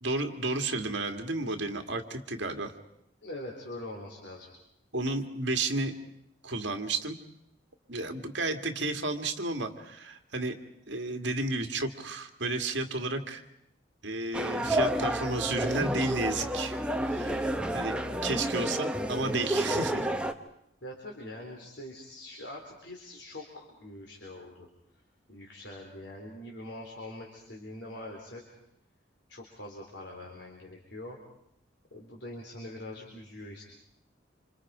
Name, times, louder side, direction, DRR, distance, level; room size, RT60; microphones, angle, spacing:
voice 1, 0.0-2.7 4.9-5.9 6.4-7.2 7.9-10.6 10.9-13.4 14.0-16.8 17.0-20.1, right 2 dB, 60° right, 5 dB, 2.0 m, -32 dB
voice 2, 3.2-4.5 19.7-19.8 20.8-24.7 25.3-28.4 29.3-31.2 31.9-33.6, left 1 dB, 60° left, -1 dB, 3.9 m, -43 dB
sound 1, 14.3-20.3, right 1 dB, 5° right, 0.9 m, -30 dB
28.5 x 27.0 x 5.1 m, 0.77 s
head